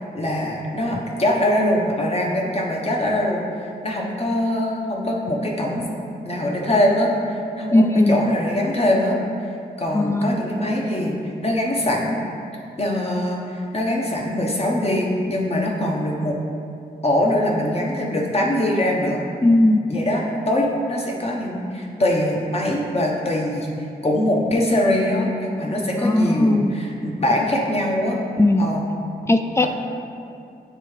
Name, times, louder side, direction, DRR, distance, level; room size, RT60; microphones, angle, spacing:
voice 1, 0.1-3.4 3.8-5.8 6.2-9.2 9.8-12.2 12.8-16.4 17.0-19.2 19.9-28.2 28.6-28.9 29.6-29.7, left 1 dB, 35° left, -2 dB, 1.1 m, -22 dB
voice 2, 7.7-8.2 9.9-10.4 19.4-19.8 26.0-26.7 28.4-28.7 29.2-29.7, left 1 dB, 15° left, 6 dB, 0.4 m, -18 dB
9.1 x 3.5 x 3.3 m, 2.5 s
cardioid pair, 65°, 17 cm